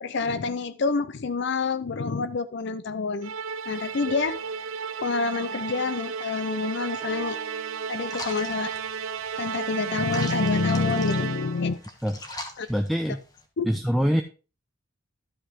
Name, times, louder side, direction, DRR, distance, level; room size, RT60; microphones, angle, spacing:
voice 1, 0.0-3.3 3.7-4.4 5.0-7.4 7.9-8.7 9.4-11.8 12.6-12.7 13.6-13.7, left 4 dB, 55° left, 13 dB, 0.5 m, -27 dB
Musical instrument, 3.2-11.7, right 6 dB, 75° right, 0.5 m, -33 dB
sound 1, 4.1-6.5 7.0-8.6 10.2-10.9, right 1 dB, 20° right, 1.3 m, -50 dB
sound 2, 8.0-13.4, left 2 dB, 20° left, 1.2 m, -42 dB
voice 2, 12.7-13.2 13.6-14.2, equal, ahead, 5 dB, 0.4 m, -24 dB
12.0 x 5.6 x 3.7 m, 0.34 s
head